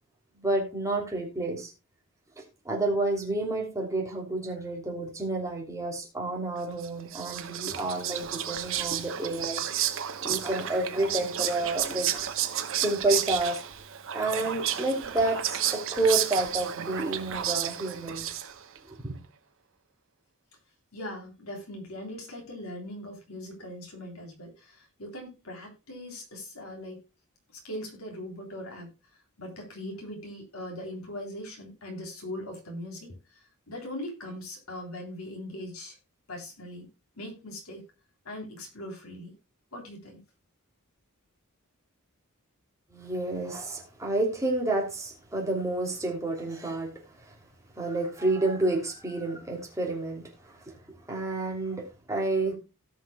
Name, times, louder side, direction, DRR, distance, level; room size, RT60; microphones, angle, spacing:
voice 1, 0.4-1.7 2.6-9.6 10.2-12.1 12.8-13.6 14.1-18.2 19.0-19.2 42.9-46.9 47.8-50.7 51.1-52.6, right 2 dB, 15° right, 2.9 m, -29 dB
Whispering, 6.8-18.8, right 10 dB, 65° right, 1.0 m, -32 dB
voice 2, 20.9-27.0 27.6-28.9 29.4-36.0 36.3-36.9 37.2-37.8 38.3-39.3 39.7-40.2, left 1 dB, 75° left, 3.5 m, -40 dB
17.5 x 6.0 x 2.2 m
head